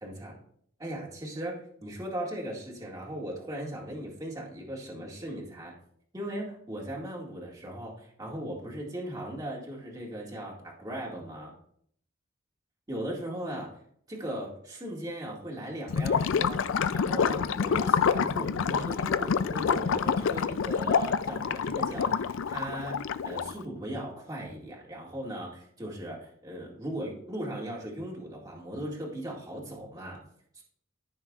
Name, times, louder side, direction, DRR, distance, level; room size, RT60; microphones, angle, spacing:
voice 1, 0.0-0.4 0.8-5.7 6.1-11.5 12.9-13.7 14.1-16.6 16.9-30.2 30.5-30.6, right 1 dB, 20° right, -4 dB, 2.0 m, -38 dB
Gurgling / Liquid, 15.9-23.6, left 6 dB, 70° left, 0.4 m, -27 dB
14.0 x 6.4 x 2.4 m, 0.65 s
head